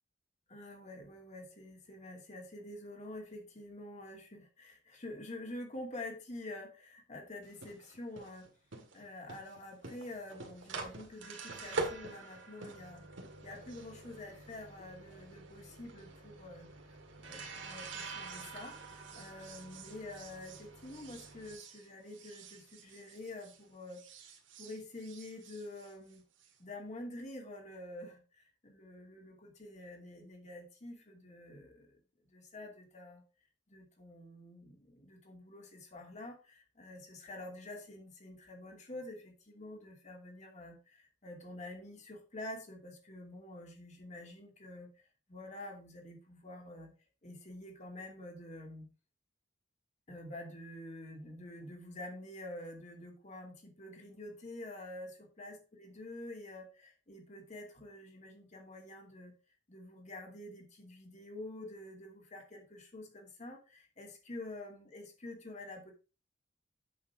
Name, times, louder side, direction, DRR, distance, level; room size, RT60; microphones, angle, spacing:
voice 1, 0.5-8.5 8.9-13.0 13.4-24.0 24.6-26.2 26.6-31.9 32.3-33.2 33.7-45.0 45.3-46.9 47.2-48.9 50.1-59.3 59.7-65.9, left 1 dB, 40° left, 2 dB, 2.6 m, -48 dB
sound 1, 7.4-23.6 23.9-26.5, right 3 dB, 80° right, 2.0 m, -46 dB
8.5 x 6.8 x 3.6 m, 0.32 s
head